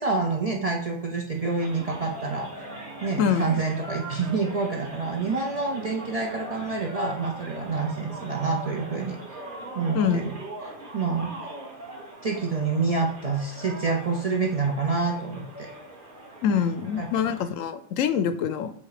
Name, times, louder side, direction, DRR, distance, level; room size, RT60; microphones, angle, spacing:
voice 1, 0.0-9.2 9.7-10.4 10.6-11.3 12.2-15.7 17.0-17.1, right 4 dB, 40° right, 0 dB, 0.6 m, -27 dB
sound 1, 1.3-17.5, right 1 dB, 60° right, 2.3 m, -41 dB
voice 2, 3.2-3.6 9.9-10.3 16.4-18.7, left 7 dB, 75° left, 11 dB, 0.9 m, -25 dB
7.3 x 2.7 x 4.9 m, 0.70 s
omnidirectional pair, 1.4 m